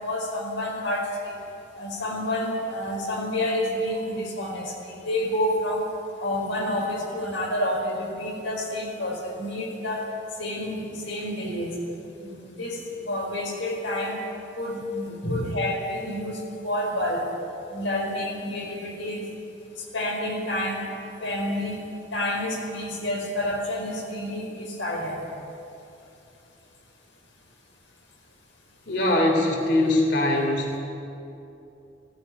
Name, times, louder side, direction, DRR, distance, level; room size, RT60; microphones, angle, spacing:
voice 1, 0.0-1.4 1.8-5.9 6.2-10.0 10.4-11.7 12.2-14.2 14.6-17.3 17.7-19.3 19.8-20.9 21.2-21.8 22.1-25.2, left 1 dB, 80° left, 0 dB, 4.9 m, -29 dB
voice 2, 15.2-15.5 28.9-30.8, left 1 dB, 60° left, 1 dB, 3.0 m, -22 dB
17.5 x 16.0 x 9.5 m, 2.8 s
head